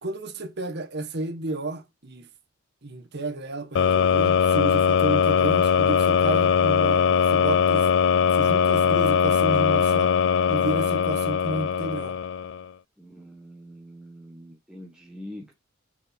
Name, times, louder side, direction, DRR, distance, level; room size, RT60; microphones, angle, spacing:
voice 1, 0.0-2.3 2.8-7.9 8.3-10.1 10.5-12.2, right 2 dB, 55° right, 1.5 m, -31 dB
sound 1, 3.7-12.7, left 7 dB, 65° left, 0.4 m, -21 dB
voice 2, 13.0-15.5, equal, 5° right, 1.4 m, -44 dB
6.4 x 4.6 x 5.9 m
head